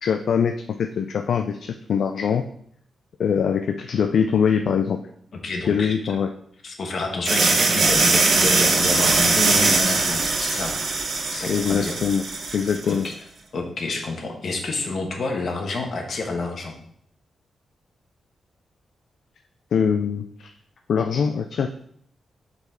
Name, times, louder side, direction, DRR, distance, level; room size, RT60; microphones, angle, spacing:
voice 1, 0.0-2.4 3.2-5.0 5.7-6.3 11.5-12.2 12.5-13.1 19.7-20.5 20.9-21.7, left 7 dB, 70° left, 6 dB, 0.3 m, -23 dB
voice 2, 5.3-5.9 6.6-10.7 11.3-12.0 12.4-13.1 13.5-16.8, left 3 dB, 55° left, 2 dB, 1.2 m, -29 dB
sound 1, 7.3-13.0, right 3 dB, 55° right, 0.9 m, -21 dB
5.6 x 4.0 x 4.3 m, 0.65 s
cardioid pair, 105°, 0 cm